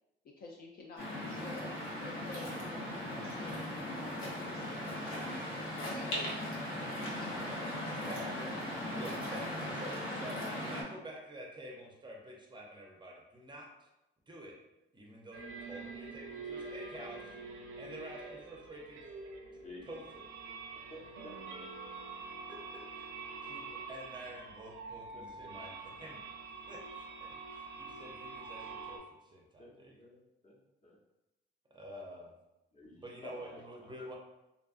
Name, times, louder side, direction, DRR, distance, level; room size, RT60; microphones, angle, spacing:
voice 1, 0.2-1.7 2.0-6.3 7.1-7.3 8.0-8.6, left 3 dB, 50° left, -1 dB, 0.4 m, -50 dB
Waves surf, 1.0-10.8, left 1 dB, 85° left, 0.8 m, -38 dB
voice 2, 9.0-13.9 14.3-14.6 14.9-17.4 17.8-19.0 19.8-20.2 22.5-22.8 23.4-26.2 26.7-30.0 31.7-32.3 32.9-34.1, equal, 25° right, -1 dB, 0.5 m, -48 dB
sound 1, 15.3-29.0, right 4 dB, 80° right, 0.5 m, -46 dB
voice 3, 19.5-20.0 20.9-21.4 25.1-25.5 29.6-31.0 32.7-33.9, left 2 dB, 35° left, -4 dB, 0.8 m, -52 dB
2.6 x 2.3 x 2.4 m, 0.95 s
cardioid pair, 90°, 20 cm